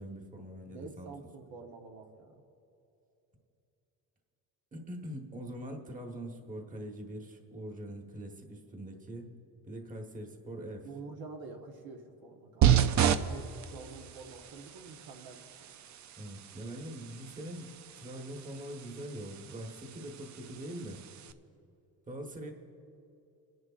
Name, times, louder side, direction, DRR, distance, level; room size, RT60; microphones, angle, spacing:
voice 1, 0.0-1.1 4.7-9.3 9.6-10.9 16.2-17.7 17.9-21.0 22.1-22.5, right 1 dB, 20° right, 2 dB, 1.4 m, -43 dB
voice 2, 0.6-2.4 10.8-15.7, right 4 dB, 70° right, 2 dB, 1.2 m, -48 dB
sound 1, 12.6-21.3, right 9 dB, 50° right, 0.5 m, -32 dB
25.0 x 11.0 x 2.5 m, 2.8 s
cardioid pair, 115°, 37 cm